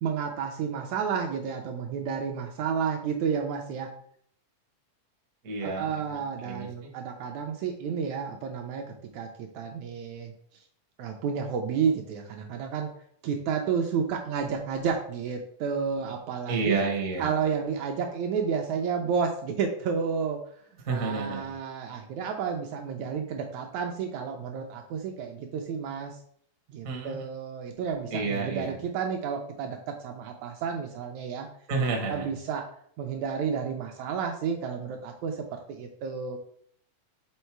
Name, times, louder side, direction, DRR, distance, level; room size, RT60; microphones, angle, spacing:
voice 1, 0.0-3.9 5.6-10.3 11.0-12.9 13.2-16.8 17.2-20.4 20.9-26.2 26.7-31.5 32.1-32.7 33.0-36.4, right 6 dB, 80° right, 3 dB, 1.7 m, -31 dB
voice 2, 5.4-6.7 16.5-17.3 20.8-21.5 26.8-27.2 28.1-28.7 31.7-32.3, right 3 dB, 65° right, 1 dB, 0.8 m, -30 dB
5.5 x 3.8 x 4.5 m, 0.63 s
omnidirectional pair, 3.7 m